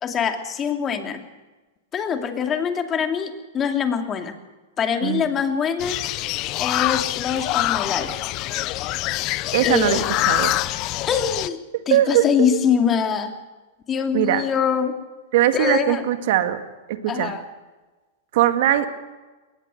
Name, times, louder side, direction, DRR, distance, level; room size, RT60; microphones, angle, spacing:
voice 1, 0.0-1.2 1.9-4.4 4.8-6.0 6.6-8.1 9.6-10.1 11.1-13.3 13.9-15.0 15.5-16.0 17.1-17.4, left 7 dB, 25° left, 5 dB, 2.5 m, -23 dB
sound 1, 5.8-11.5, left 17 dB, 45° left, 0.7 m, -25 dB
voice 2, 9.5-10.0 10.3-10.6 11.9-12.5 14.1-14.4 15.3-16.6 16.9-17.3 18.3-18.9, right 12 dB, 60° right, 8 dB, 2.0 m, -20 dB
22.0 x 18.5 x 6.6 m, 1.2 s
hypercardioid pair, 120°, 0 cm